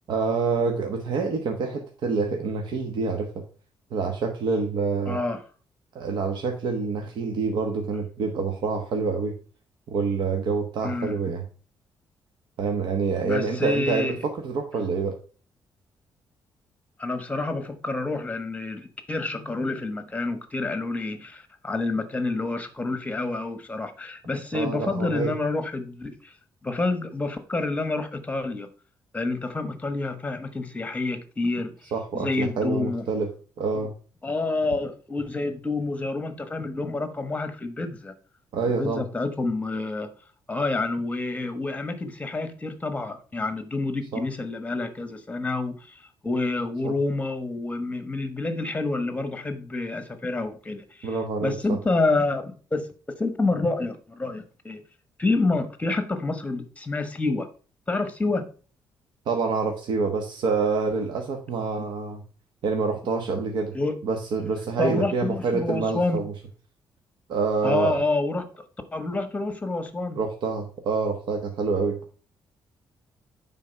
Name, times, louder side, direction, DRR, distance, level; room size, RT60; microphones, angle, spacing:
voice 1, 0.1-3.4 3.9-5.2 5.9-9.3 9.9-11.4 12.6-15.1 24.5-25.3 31.9-33.3 33.6-33.9 38.5-39.0 44.1-44.2 46.8-46.9 51.0-51.5 59.3-62.2 62.6-63.7 64.0-66.3 67.3-68.0 70.2-72.0, right 4 dB, 75° right, 4 dB, 1.2 m, -27 dB
voice 2, 5.1-5.4 10.8-11.2 13.2-14.2 17.0-26.3 26.6-28.7 29.1-31.7 32.1-33.0 34.2-38.1 38.6-40.1 40.5-52.9 53.2-54.8 55.2-57.5 57.9-58.4 63.7-64.0 64.8-66.2 67.6-68.6 68.9-70.2, left 3 dB, 15° left, 10 dB, 1.2 m, -28 dB
9.4 x 4.0 x 5.7 m, 0.38 s
cardioid pair, 120°, 8 cm